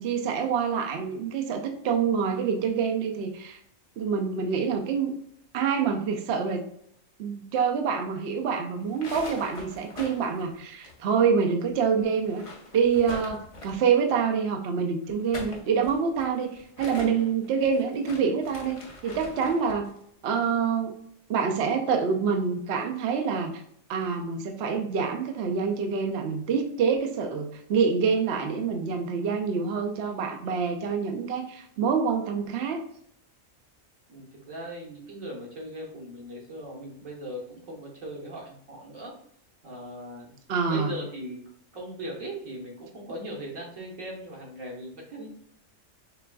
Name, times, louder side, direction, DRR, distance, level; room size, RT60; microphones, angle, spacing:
voice 1, 0.0-3.6 4.0-5.1 5.5-6.6 7.2-12.4 12.7-19.9 20.2-20.9 21.3-23.6 23.9-32.8 40.5-41.0, right 6 dB, 60° right, 4 dB, 0.7 m, -26 dB
sound 1, 8.8-11.4 11.7-11.8 12.2-13.9 15.0-19.9, left 2 dB, 30° left, 0.7 m, -43 dB
voice 2, 34.1-39.1 39.6-40.3 40.6-41.4 41.7-45.3, right 1 dB, 85° right, -2 dB, 1.6 m, -39 dB
6.4 x 2.5 x 2.2 m, 0.69 s
omnidirectional pair, 1.3 m